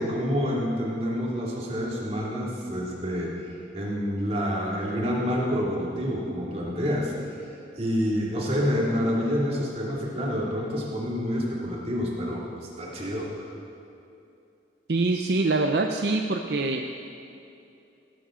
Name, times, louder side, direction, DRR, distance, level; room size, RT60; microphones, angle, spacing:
voice 1, 0.0-7.5 7.8-13.5, equal, 35° right, -4 dB, 2.4 m, -28 dB
voice 2, 14.9-16.8, right 3 dB, 60° right, 4 dB, 0.6 m, -24 dB
18.0 x 12.5 x 3.8 m, 2.7 s
head